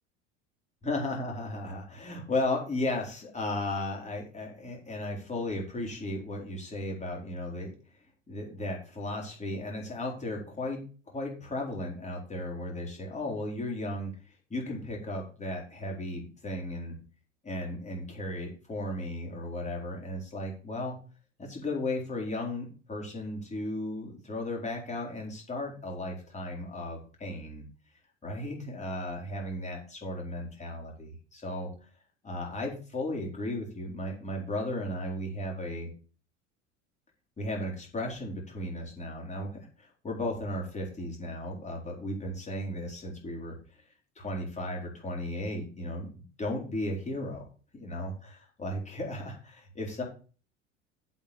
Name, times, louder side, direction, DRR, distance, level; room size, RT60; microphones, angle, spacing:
voice 1, 0.8-7.7 8.3-10.8 11.1-14.1 14.5-17.0 17.4-20.9 21.4-27.6 28.2-31.9 32.2-35.9 37.4-43.5 44.2-47.4 47.7-50.0, left 1 dB, 20° left, -1 dB, 4.5 m, -35 dB
8.0 x 6.4 x 7.2 m, 0.38 s
figure-of-eight pair, 70°, 37 cm